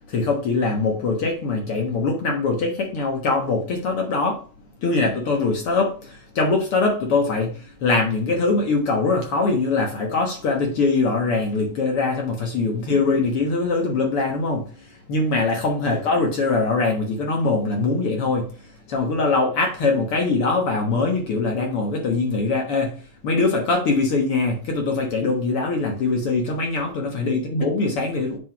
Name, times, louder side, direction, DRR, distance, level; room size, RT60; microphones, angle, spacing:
voice 1, 0.1-4.4 4.8-14.7 15.1-18.5 18.9-28.4, left 3 dB, 55° left, 1.8 m, -22 dB
7.8 x 3.6 x 5.8 m
omnidirectional pair, 3.8 m